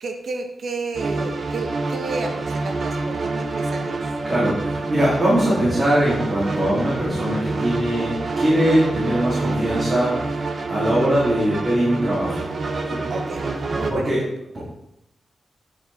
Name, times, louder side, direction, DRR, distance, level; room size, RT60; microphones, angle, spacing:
voice 1, 0.0-4.0 13.1-13.4 13.7-14.3, right 3 dB, 70° right, 4 dB, 1.4 m, -31 dB
sound 1, 0.9-13.9, right 3 dB, 55° right, 1.1 m, -27 dB
voice 2, 4.2-12.4 12.9-13.0 13.9-14.2, right 1 dB, 35° right, -8 dB, 3.6 m, -21 dB
10.0 x 6.2 x 4.4 m, 0.81 s
wide cardioid pair, 115°, 0 cm